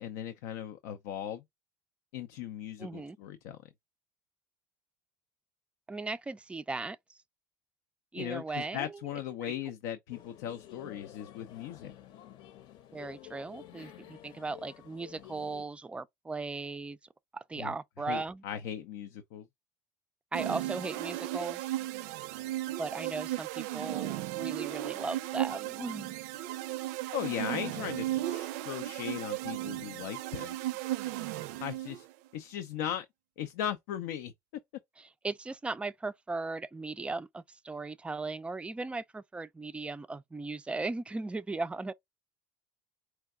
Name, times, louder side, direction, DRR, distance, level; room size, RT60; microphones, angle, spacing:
voice 1, 0.0-1.4 2.1-3.6 8.2-11.9 17.6-17.7 18.1-19.5 27.1-30.6 31.6-32.1 32.3-33.1 33.4-34.3, left 10 dB, 80° left, 0.5 m, -38 dB
voice 2, 2.8-3.2 5.9-7.2 8.1-8.9 12.9-17.0 17.3-18.4 20.3-21.7 22.8-26.2 35.0-41.9, right 3 dB, 15° right, 0.4 m, -37 dB
sound 1, 10.1-15.6, left 12 dB, 60° left, 0.9 m, -51 dB
sound 2, 20.3-32.1, right 15 dB, 80° right, 0.4 m, -35 dB
4.5 x 2.2 x 3.6 m
supercardioid pair, 105°, 9 cm